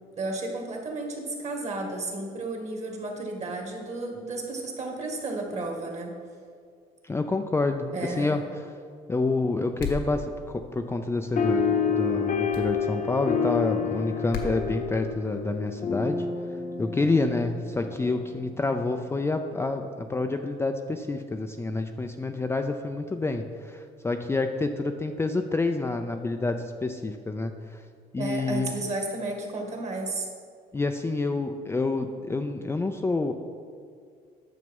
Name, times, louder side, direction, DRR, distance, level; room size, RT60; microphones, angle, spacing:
voice 1, 0.2-6.1 7.9-8.3 28.2-30.3, right 2 dB, 40° right, 2 dB, 2.0 m, -33 dB
voice 2, 7.0-8.4 9.1-16.3 16.8-27.8 28.1-28.7 30.7-33.3, left 3 dB, 15° left, 5 dB, 0.4 m, -28 dB
sound 1, 9.8-10.1 12.5-12.7 14.3-14.6, left 4 dB, 85° left, 1.4 m, -33 dB
sound 2, 11.4-18.2, left 6 dB, 50° left, 1.0 m, -28 dB
9.5 x 6.7 x 5.4 m, 2.2 s
cardioid pair, 110°, 17 cm